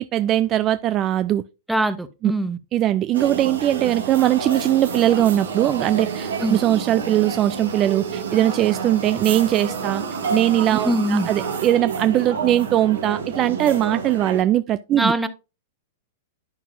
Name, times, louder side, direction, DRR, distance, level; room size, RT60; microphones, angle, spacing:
voice 1, 0.0-1.4 2.2-2.3 2.7-10.0 10.3-15.1, right 12 dB, 30° right, 0.3 m, -20 dB
voice 2, 1.7-2.6 6.4-6.6 10.8-11.3 15.0-15.3, right 1 dB, 5° right, 0.8 m, -22 dB
sound 1, 3.1-14.4, right 5 dB, 70° right, 1.9 m, -29 dB
11.0 x 5.9 x 2.6 m
figure-of-eight pair, 100°, 0 cm